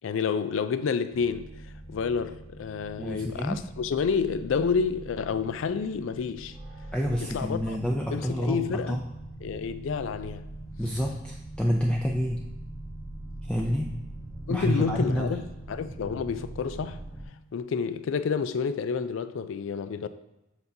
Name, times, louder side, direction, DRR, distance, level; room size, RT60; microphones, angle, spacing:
voice 1, 0.0-1.5 1.9-6.6 7.2-7.8 8.1-9.0 9.4-10.5 14.5-17.0 17.5-20.1, left 5 dB, 75° left, 0.4 m, -29 dB
sound 1, 1.1-17.2, right 1 dB, 15° right, 1.0 m, -42 dB
voice 2, 3.0-3.6 6.9-9.0 10.8-12.4 13.4-13.9 14.5-15.3, equal, 5° left, 0.4 m, -28 dB
7.9 x 5.3 x 2.7 m
head